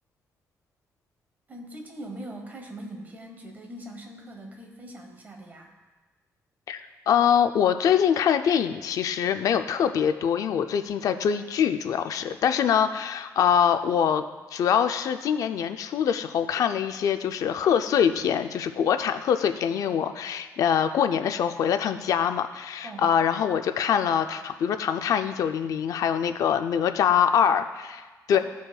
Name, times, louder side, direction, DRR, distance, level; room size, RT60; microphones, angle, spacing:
voice 1, 1.5-5.7 22.8-23.1 28.3-28.4, right 1 dB, 30° right, 3 dB, 1.1 m, -41 dB
voice 2, 6.7-14.2 14.5-28.4, left 8 dB, 70° left, 9 dB, 0.4 m, -24 dB
14.5 x 5.2 x 2.3 m, 1.3 s
cardioid pair, 145°, 6 cm